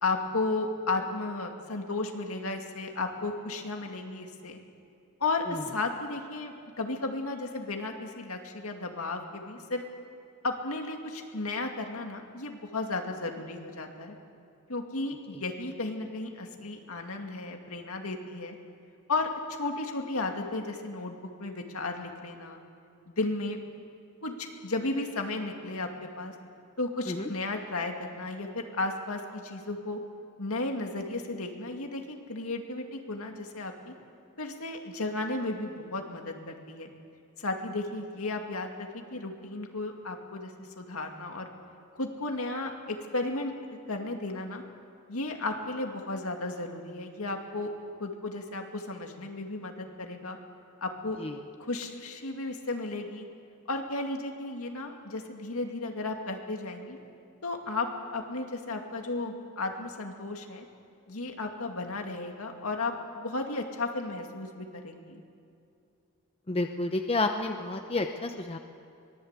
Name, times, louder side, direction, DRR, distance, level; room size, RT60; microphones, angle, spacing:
voice 1, 0.0-4.6 5.2-9.8 10.4-14.2 14.7-18.6 19.1-22.6 23.1-23.6 24.2-26.3 26.8-30.0 30.4-33.9 34.4-36.9 37.4-41.5 42.0-43.5 43.9-44.6 45.1-47.7 48.0-50.4 50.8-51.2 51.6-53.3 53.7-57.0 57.4-57.9 58.1-60.7 61.1-65.2, left 2 dB, 70° left, 3 dB, 2.4 m, -34 dB
voice 2, 66.5-68.6, left 2 dB, 25° left, 5 dB, 0.9 m, -30 dB
23.5 x 19.0 x 8.3 m, 2.5 s
head